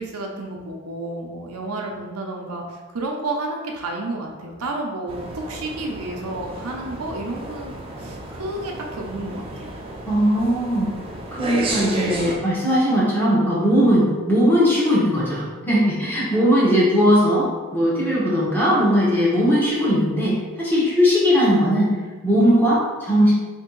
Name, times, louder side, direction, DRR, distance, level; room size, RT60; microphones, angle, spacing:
voice 1, 0.0-9.7, right 2 dB, 85° right, 1 dB, 0.6 m, -31 dB
sound 1, 5.1-12.4, right 2 dB, 25° right, 0.3 m, -32 dB
voice 2, 10.1-10.9 11.3-22.0 22.2-23.3, equal, 10° left, -7 dB, 0.8 m, -19 dB
2.9 x 2.7 x 3.8 m, 1.3 s
head